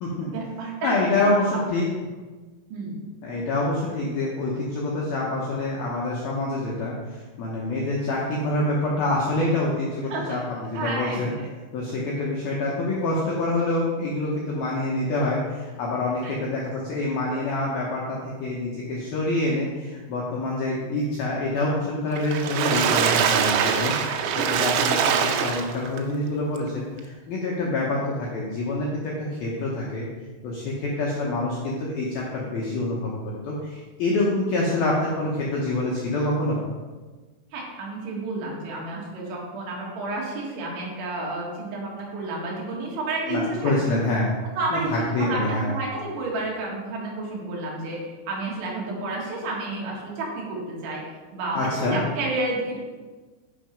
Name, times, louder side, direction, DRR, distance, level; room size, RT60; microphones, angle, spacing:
voice 1, 0.2-1.5 1.8-1.9 2.7-3.0 10.0-10.5 10.7-11.5 16.2-16.4 23.7-24.1 37.5-43.7 44.5-44.9 45.2-51.0 51.3-52.8, right 2 dB, 70° right, -3 dB, 4.0 m, -31 dB
voice 2, 0.8-1.9 3.2-11.3 11.7-30.1 30.4-36.6 43.3-44.3 44.7-45.8 51.5-52.0, left 2 dB, 75° left, -4 dB, 2.2 m, -26 dB
Water / Splash splatter, 22.2-26.0 26.6-26.7 27.0-27.1, right 7 dB, 85° right, 3.3 m, -23 dB
11.0 x 5.6 x 5.2 m, 1.4 s
omnidirectional pair, 5.9 m